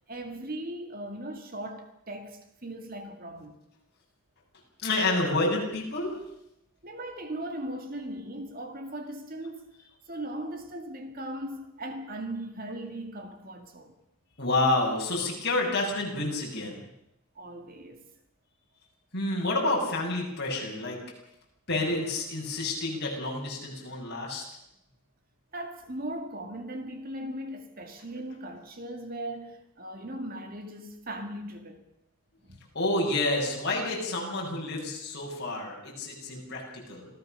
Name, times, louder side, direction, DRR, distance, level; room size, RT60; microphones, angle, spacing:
voice 1, 0.1-3.6 6.8-9.7 10.1-14.0 17.4-18.0 25.5-31.9 32.4-32.6, right 1 dB, 40° right, 2.1 m, -38 dB
voice 2, 4.8-6.1 14.4-16.8 19.1-21.0 21.7-24.4 32.7-37.1, left 2 dB, 50° left, 6.9 m, -29 dB
26.5 x 16.5 x 6.7 m
head